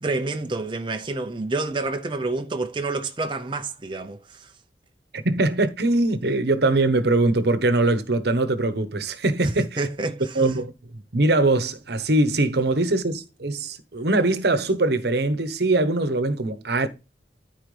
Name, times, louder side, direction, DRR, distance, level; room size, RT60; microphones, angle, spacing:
voice 1, 0.0-4.5 9.4-10.5, right 3 dB, 30° right, 0.7 m, -28 dB
voice 2, 5.1-9.9 10.3-10.7 11.1-16.9, right 2 dB, 65° right, 1.1 m, -22 dB
13.0 x 4.6 x 3.3 m
head